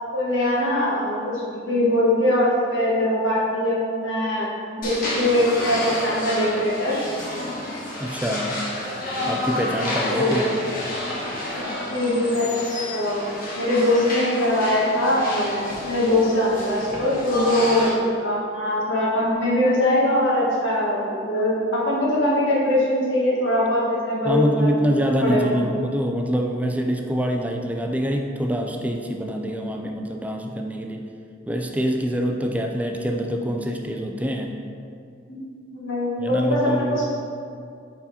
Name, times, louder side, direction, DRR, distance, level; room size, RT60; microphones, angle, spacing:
voice 1, 0.1-7.0 10.1-10.4 11.9-13.3 13.5-15.6 15.8-18.0 18.2-24.8 25.2-25.5 35.3-35.4 35.7-37.1, left 1 dB, 80° left, -5 dB, 1.5 m, -22 dB
sound 1, 4.8-17.9, left 1 dB, 50° left, 1.3 m, -30 dB
voice 2, 8.0-8.5 9.3-10.5 24.2-31.0 31.5-34.6 36.2-37.1, equal, 10° right, 2 dB, 0.3 m, -25 dB
4.6 x 4.2 x 5.4 m, 2.4 s
head